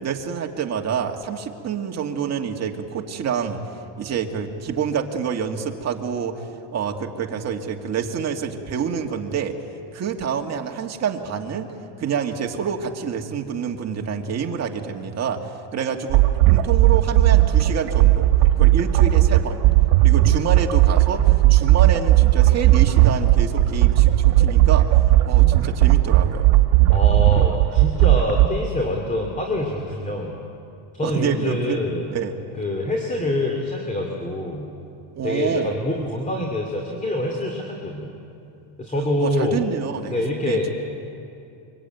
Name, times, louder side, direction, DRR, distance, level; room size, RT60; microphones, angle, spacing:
voice 1, 0.0-6.4 6.7-9.6 9.9-11.7 12.0-18.3 18.6-19.6 20.0-24.9 25.2-26.5 31.0-31.8 32.1-32.3 35.1-35.8 39.2-40.7, right 7 dB, 30° right, 2 dB, 2.1 m, -27 dB
sound 1, 16.1-28.5, right 15 dB, 80° right, 1.6 m, -16 dB
voice 2, 26.9-30.4 30.9-32.1 32.5-34.7 35.2-38.1 38.8-39.7 40.1-40.7, left 1 dB, 15° left, 1 dB, 2.6 m, -25 dB
25.5 x 24.5 x 9.3 m, 2.7 s
cardioid pair, 160°, 49 cm